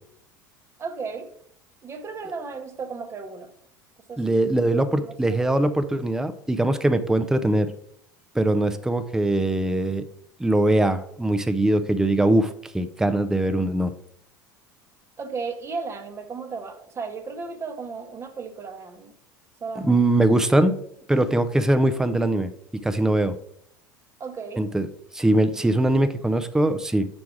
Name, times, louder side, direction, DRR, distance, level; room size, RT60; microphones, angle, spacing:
voice 1, 0.8-1.3 1.8-3.5 4.1-4.2 4.7-5.5 15.2-19.1 19.6-20.0 24.2-24.6, right 4 dB, 25° right, 7 dB, 0.8 m, -35 dB
voice 2, 4.2-7.7 8.3-10.0 10.4-13.9 19.8-20.8 21.1-22.5 22.8-23.4 24.6-24.9 25.1-27.1, right 1 dB, 5° right, 10 dB, 0.5 m, -21 dB
6.2 x 4.6 x 4.6 m, 0.69 s
figure-of-eight pair, 70°, 11 cm